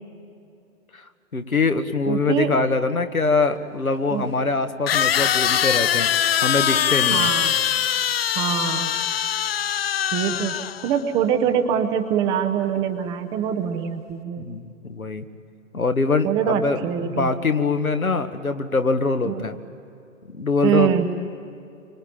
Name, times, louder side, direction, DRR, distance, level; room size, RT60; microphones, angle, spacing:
voice 1, 1.3-6.1 6.4-7.3 14.4-15.3 15.7-19.6 20.3-20.9, left 3 dB, 85° left, 7 dB, 1.8 m, -23 dB
voice 2, 2.1-2.5 4.1-4.3 7.1-7.5 8.4-8.9 10.1-10.6 10.8-14.5 16.2-17.3 19.3-19.4 20.6-21.1, right 9 dB, 10° right, 7 dB, 0.6 m, -23 dB
sound 1, 3.2-3.3 4.9-11.0, left 9 dB, 45° left, 0.6 m, -22 dB
25.0 x 25.0 x 8.9 m, 2.5 s
figure-of-eight pair, 120°, 41 cm